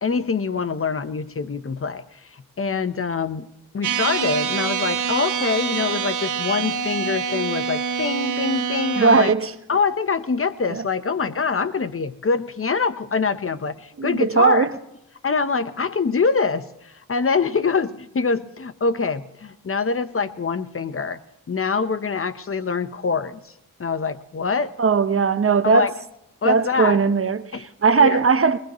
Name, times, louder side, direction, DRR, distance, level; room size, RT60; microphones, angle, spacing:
voice 1, 0.0-3.5 3.7-9.3 9.7-14.7 15.2-21.2 21.5-23.5 23.8-24.7 25.6-25.9 26.4-27.0 27.5-27.7 28.0-28.2, left 5 dB, 40° left, 0.9 m, -24 dB
sound 1, 3.8-9.3, right 6 dB, 60° right, 1.2 m, -26 dB
voice 2, 9.0-9.5 10.7-10.8 14.0-14.7 24.8-25.9 26.4-28.6, right 5 dB, 40° right, 1.0 m, -18 dB
22.0 x 20.5 x 3.1 m
cardioid pair, 60°, 34 cm